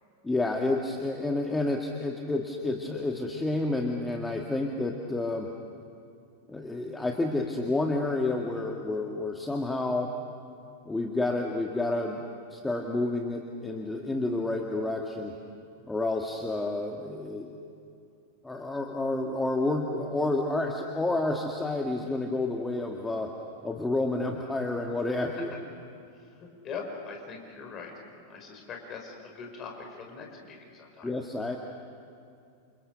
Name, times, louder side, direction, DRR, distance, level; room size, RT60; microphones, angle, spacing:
voice 1, 0.2-5.5 6.5-10.1 10.8-12.2 12.5-15.3 15.9-17.6 18.4-23.3 23.6-25.5 31.0-31.6, left 2 dB, 10° left, 2 dB, 1.8 m, -29 dB
voice 2, 26.4-27.9 28.3-31.1, left 5 dB, 30° left, 2 dB, 5.7 m, -41 dB
28.5 x 28.5 x 6.9 m, 2.5 s
figure-of-eight pair, 90°, 0 cm